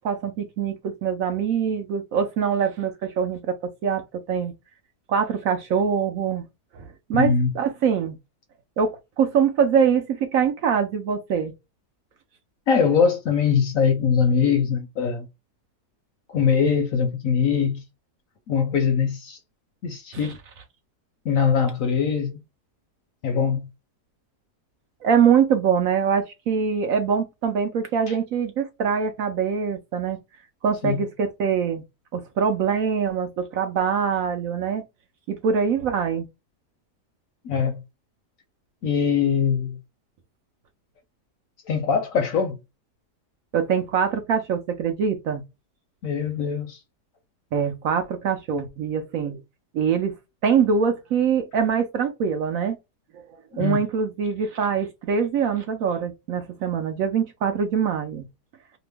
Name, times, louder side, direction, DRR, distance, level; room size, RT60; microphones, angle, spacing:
voice 1, 0.0-3.6 3.8-4.0 4.3-4.5 5.1-6.4 6.7-8.2 8.8-11.5 20.1-20.3 25.0-30.2 30.6-31.8 32.1-34.8 35.3-36.3 43.5-45.4 47.5-49.4 49.7-50.1 50.4-52.8 53.1-53.2 53.6-58.2, right 7 dB, 65° right, 0.9 m, -23 dB
voice 2, 7.1-7.5 12.7-15.3 16.3-17.8 18.5-19.4 19.8-20.4 21.3-22.4 23.2-23.7 28.1-28.2 30.8-31.0 37.4-37.8 38.8-39.8 41.7-42.6 46.0-46.8 53.5-53.8, left 6 dB, 65° left, 0.9 m, -22 dB
2.9 x 2.2 x 3.2 m
omnidirectional pair, 1.8 m